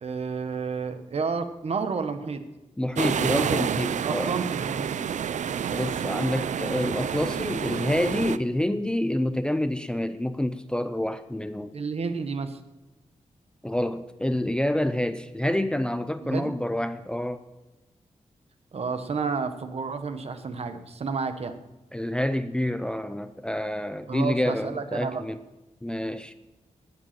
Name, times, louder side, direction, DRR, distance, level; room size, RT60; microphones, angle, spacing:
voice 1, 0.0-2.4 4.0-5.0 11.7-12.6 16.2-16.5 18.7-21.5 24.1-25.2, right 5 dB, 55° right, 1.1 m, -31 dB
voice 2, 2.8-4.4 5.7-11.7 13.6-17.5 21.9-25.4 25.8-26.3, left 1 dB, 5° left, 0.5 m, -27 dB
sound 1, 3.0-8.4, right 8 dB, 75° right, 0.5 m, -29 dB
19.0 x 7.7 x 5.9 m
wide cardioid pair, 165°, 12 cm